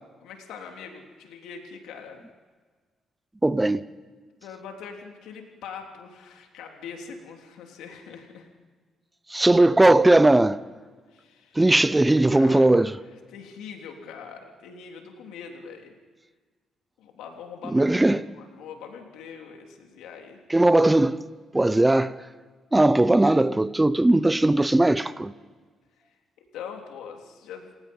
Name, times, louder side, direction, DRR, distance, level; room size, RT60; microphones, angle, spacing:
voice 1, 0.2-2.2 4.4-8.5 11.1-11.6 12.3-13.0 13.3-15.9 17.0-17.9 18.3-20.4 26.0-27.7, left 6 dB, 90° left, 3.3 m, -42 dB
voice 2, 3.4-3.8 9.3-10.6 11.6-13.0 17.7-18.3 20.5-21.2 21.5-22.2 22.7-25.3, right 2 dB, 15° right, 0.7 m, -19 dB
29.0 x 19.0 x 5.5 m
cardioid pair, 90°, 0 cm